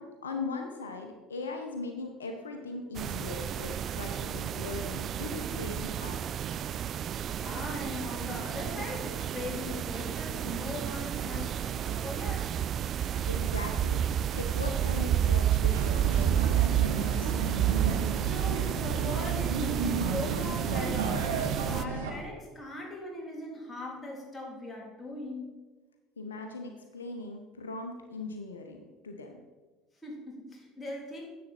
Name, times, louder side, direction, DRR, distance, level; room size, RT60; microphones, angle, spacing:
voice 1, 0.0-6.3 13.3-14.1 14.3-17.3 26.2-29.3, left 3 dB, 80° left, 4 dB, 0.8 m, -39 dB
sound 1, 2.9-21.8, right 10 dB, 45° right, 0.3 m, -30 dB
voice 2, 7.3-13.3 18.2-25.5 30.0-31.2, left 1 dB, 15° left, -3 dB, 3.4 m, -40 dB
sound 2, 15.7-22.1, right 4 dB, 75° right, 1.3 m, -33 dB
10.5 x 7.5 x 4.4 m, 1.3 s
figure-of-eight pair, 65°, 0 cm